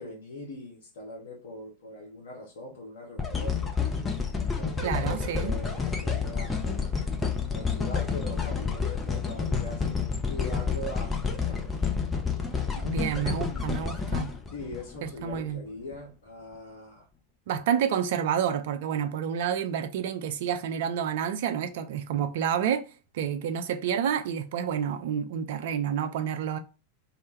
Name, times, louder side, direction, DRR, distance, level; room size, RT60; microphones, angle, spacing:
voice 1, 0.0-3.8 4.5-7.0 7.5-10.0 10.3-11.8 13.2-13.9 14.5-17.1, left 1 dB, 60° left, 0.7 m, -42 dB
sound 1, 3.2-15.4 15.9-16.0, left 5 dB, 15° left, 0.5 m, -29 dB
voice 2, 4.8-5.5 12.7-14.3 15.0-15.6 17.5-22.9 23.1-26.6, right 8 dB, 55° right, 0.3 m, -29 dB
2.2 x 2.0 x 3.2 m
figure-of-eight pair, 90°, 0 cm